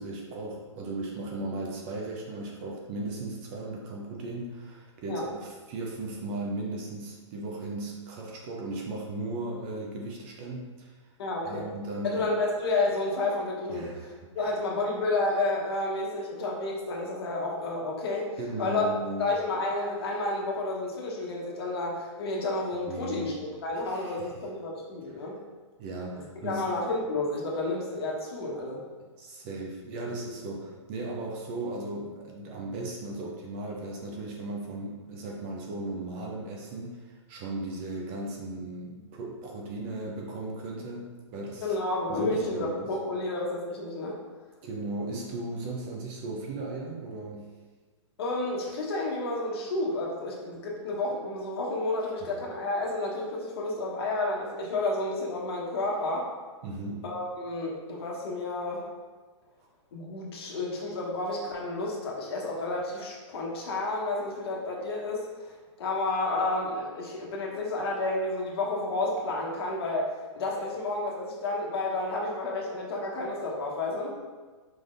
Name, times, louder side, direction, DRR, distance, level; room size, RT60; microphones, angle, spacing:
voice 1, 0.0-10.9 11.4-12.2 13.7-14.5 18.4-19.2 22.9-23.3 23.9-24.3 25.8-26.7 29.2-41.7 42.1-42.9 44.6-47.5 56.6-57.1, right 2 dB, 25° right, -1 dB, 0.5 m, -36 dB
voice 2, 11.2-11.7 12.0-18.3 18.6-18.9 19.2-23.3 23.6-25.4 26.4-28.8 41.6-44.2 48.2-56.3 57.0-58.9 59.9-65.5 65.8-74.1, left 2 dB, 50° left, -2 dB, 1.2 m, -31 dB
5.0 x 3.8 x 2.5 m, 1.4 s
hypercardioid pair, 160°, 16 cm